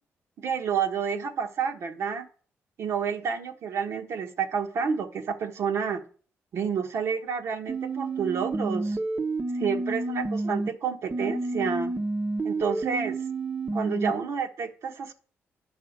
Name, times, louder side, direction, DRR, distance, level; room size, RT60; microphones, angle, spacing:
voice 1, 0.4-2.2 2.8-6.0 6.5-9.0 9.5-11.9 12.4-13.2 13.7-15.1, right 6 dB, 65° right, 4 dB, 1.2 m, -29 dB
sound 1, 7.7-10.7 11.1-14.1, right 3 dB, 25° right, 0.9 m, -30 dB
8.9 x 5.5 x 6.6 m, 0.42 s
cardioid pair, 115°, 5 cm